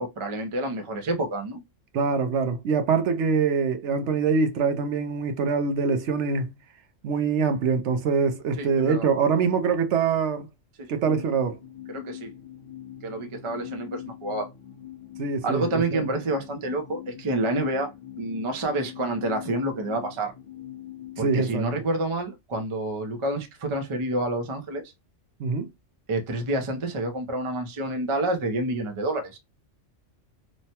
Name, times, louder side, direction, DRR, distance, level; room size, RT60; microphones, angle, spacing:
voice 1, 0.2-1.6 8.6-9.1 10.8-10.9 11.9-12.3 13.0-14.5 15.4-17.9 18.2-20.3 21.2-24.8 26.1-29.4, right 2 dB, 35° right, 0.5 m, -28 dB
voice 2, 1.9-6.5 7.0-10.5 10.9-11.6 15.2-16.1 21.2-21.7 25.4-25.7, right 5 dB, 70° right, 0.8 m, -24 dB
sound 1, 11.0-21.5, left 12 dB, 55° left, 1.0 m, -42 dB
3.1 x 2.1 x 2.7 m
omnidirectional pair, 1.3 m